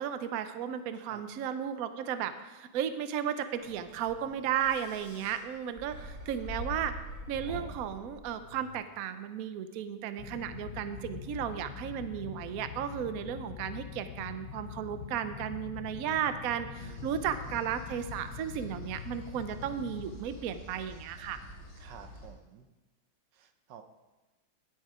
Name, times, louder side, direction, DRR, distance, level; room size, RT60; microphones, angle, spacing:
voice 1, 0.0-6.9 7.3-21.4, right 9 dB, 90° right, 10 dB, 0.7 m, -34 dB
sound 1, 3.6-8.8, left 1 dB, 40° right, 3.1 m, -44 dB
voice 2, 3.6-4.5 16.8-17.7 21.8-22.7 23.3-23.8, right 8 dB, 65° right, 8 dB, 1.3 m, -53 dB
sound 2, 10.2-20.1, left 9 dB, 70° left, 1.1 m, -44 dB
sound 3, 16.7-22.3, left 1 dB, 55° left, 3.5 m, -49 dB
10.5 x 8.6 x 4.8 m, 1.1 s
omnidirectional pair, 2.3 m